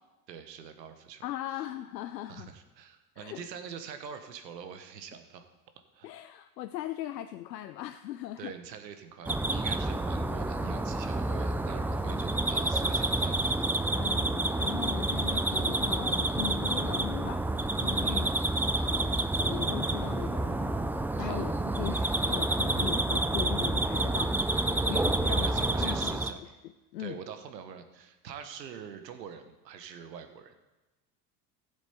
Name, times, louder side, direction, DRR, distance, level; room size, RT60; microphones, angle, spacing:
voice 1, 0.3-1.7 2.3-5.5 5.9-6.1 8.4-13.7 18.0-18.3 21.2-21.5 24.9-26.5 27.0-30.5, right 7 dB, 85° right, 8 dB, 1.2 m, -45 dB
voice 2, 1.2-2.5 3.2-3.4 6.0-8.5 11.8-11.9 13.9-17.4 17.8-18.3 18.7-20.8 21.2-25.5 25.8-27.2, left 13 dB, 90° left, 9 dB, 0.6 m, -39 dB
sound 1, 9.3-26.3, right 2 dB, 5° right, 0.4 m, -29 dB
15.0 x 7.2 x 4.4 m, 1.1 s
hypercardioid pair, 80°, 48 cm